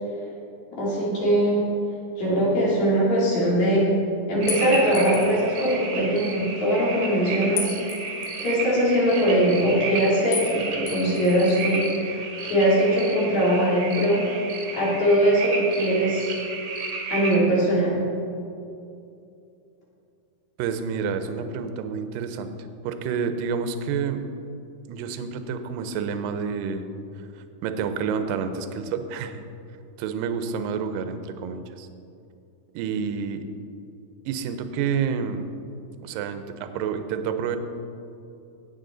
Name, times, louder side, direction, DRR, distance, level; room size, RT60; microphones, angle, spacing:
voice 1, 0.8-1.6 2.2-3.8 4.3-7.7 8.4-14.3 14.7-16.3 17.1-17.9, right 1 dB, 50° left, -7 dB, 4.2 m, -21 dB
sound 1, 4.4-17.4, right 4 dB, 60° right, 1.8 m, -33 dB
sound 2, 4.5-5.5 7.6-8.6 10.3-10.6 10.9-11.8, left 6 dB, 65° left, 2.7 m, -34 dB
voice 2, 20.6-22.5 22.8-24.2 24.9-26.8 27.2-29.4 30.0-31.9 32.7-33.4 34.3-35.4 36.0-37.6, right 6 dB, 75° right, 8 dB, 2.1 m, -29 dB
17.5 x 7.2 x 3.9 m, 2.6 s
omnidirectional pair, 4.4 m